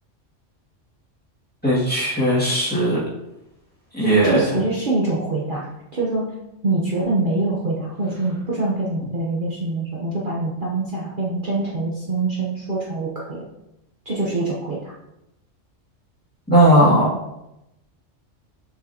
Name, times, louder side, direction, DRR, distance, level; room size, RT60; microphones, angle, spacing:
voice 1, 1.6-3.0 3.9-4.4 16.5-17.1, right 1 dB, 5° left, -9 dB, 2.2 m, -17 dB
voice 2, 4.0-5.7 5.9-6.3 6.6-13.4 14.0-14.9, right 2 dB, 45° right, -6 dB, 1.2 m, -24 dB
6.6 x 6.1 x 2.9 m, 0.89 s
omnidirectional pair, 1.3 m